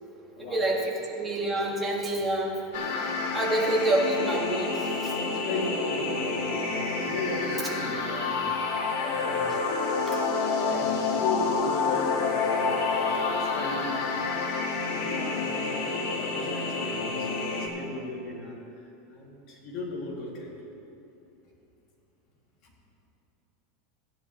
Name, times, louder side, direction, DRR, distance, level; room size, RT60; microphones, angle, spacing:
voice 1, 0.5-2.6 3.3-5.1, right 1 dB, 10° right, -4 dB, 1.8 m, -27 dB
sound 1, 2.7-17.7, left 4 dB, 70° left, 1.7 m, -28 dB
voice 2, 5.2-6.7 7.0-8.6 9.0-9.6 10.6-18.5 19.1-20.5, left 2 dB, 45° left, -3 dB, 2.6 m, -36 dB
16.5 x 10.5 x 3.2 m, 2.9 s
supercardioid pair, 160°, 0 cm